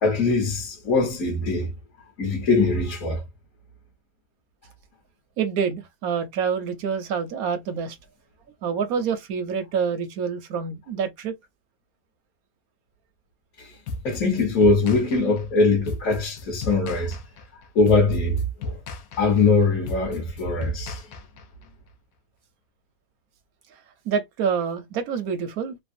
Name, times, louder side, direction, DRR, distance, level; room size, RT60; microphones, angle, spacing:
voice 1, 0.0-1.7 2.2-3.2 13.6-13.7 14.0-17.2 17.7-18.8 19.2-21.1, left 3 dB, 50° left, 1.3 m, -22 dB
voice 2, 5.4-8.0 8.6-11.3 23.7-23.8 24.0-25.8, right 6 dB, 70° right, 0.9 m, -27 dB
sound 1, 13.9-21.7, left 3 dB, 70° left, 0.8 m, -35 dB
3.3 x 2.1 x 2.5 m
omnidirectional pair, 2.0 m